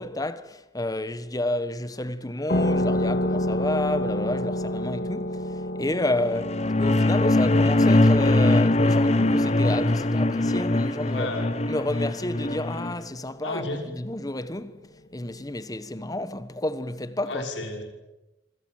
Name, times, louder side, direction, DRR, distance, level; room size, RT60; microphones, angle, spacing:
voice 1, 0.0-11.3 11.7-17.5, left 1 dB, 20° left, 1.2 m, -30 dB
sound 1, 2.5-11.7, left 1 dB, 55° left, 2.1 m, -30 dB
sound 2, 6.3-12.9, left 2 dB, 35° left, 1.1 m, -21 dB
voice 2, 11.1-11.6 13.4-13.8 17.3-17.8, left 2 dB, 90° left, 5.9 m, -32 dB
26.0 x 26.0 x 7.8 m
head